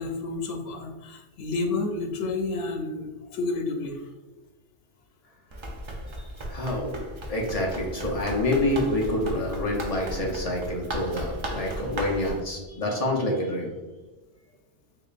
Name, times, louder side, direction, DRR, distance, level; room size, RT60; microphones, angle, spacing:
voice 1, 0.0-4.1 6.0-6.6, left 3 dB, 85° left, 3 dB, 0.9 m, -31 dB
Run, 5.5-12.4, right 1 dB, 50° right, 0.3 m, -36 dB
voice 2, 6.5-13.7, left 1 dB, 40° left, -1 dB, 0.6 m, -27 dB
3.8 x 3.3 x 2.4 m, 1.2 s
omnidirectional pair, 1.2 m